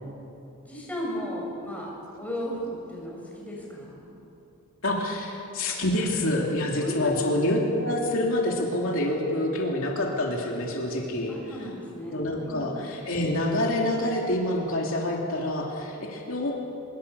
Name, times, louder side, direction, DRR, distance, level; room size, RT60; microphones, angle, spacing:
voice 1, 0.6-4.1 6.7-7.2 11.3-12.8, equal, 5° left, -3 dB, 6.7 m, -35 dB
voice 2, 4.8-11.3 12.0-16.5, left 1 dB, 60° left, -1 dB, 3.0 m, -27 dB
25.0 x 22.5 x 7.1 m, 2.9 s
head